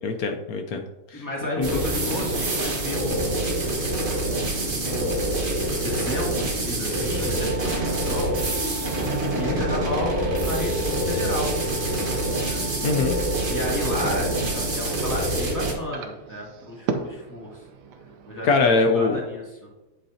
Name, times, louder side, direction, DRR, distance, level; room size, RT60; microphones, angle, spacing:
voice 1, 0.0-0.8 1.1-1.2 1.6-1.7 12.8-13.2 18.4-19.2, left 4 dB, 80° left, 4 dB, 0.8 m, -22 dB
voice 2, 1.1-3.4 4.7-8.4 9.3-12.1 12.4-12.6 13.5-17.6 18.3-19.7, equal, 10° left, -3 dB, 2.2 m, -33 dB
sound 1, 1.6-15.7, right 1 dB, 30° right, 1.2 m, -26 dB
sound 2, 7.1-14.8, right 5 dB, 30° left, 1.4 m, -42 dB
sound 3, 13.5-18.6, right 5 dB, 65° right, 1.1 m, -37 dB
9.8 x 8.2 x 2.8 m, 1.0 s
omnidirectional pair, 2.4 m